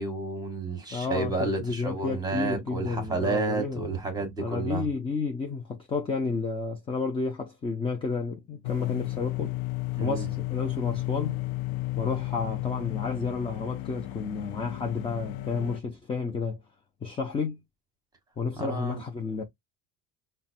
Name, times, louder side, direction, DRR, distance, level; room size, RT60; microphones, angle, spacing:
voice 1, 0.0-4.9 10.0-10.3 18.6-19.0, right 3 dB, 10° right, 1.2 m, -31 dB
voice 2, 0.9-3.8 4.4-9.6 10.0-11.4 12.0-16.6 17.0-17.6 18.4-19.4, left 4 dB, 15° left, 0.4 m, -31 dB
sound 1, 8.6-15.8, left 19 dB, 90° left, 0.5 m, -33 dB
5.5 x 2.2 x 2.6 m
cardioid pair, 160°, 36 cm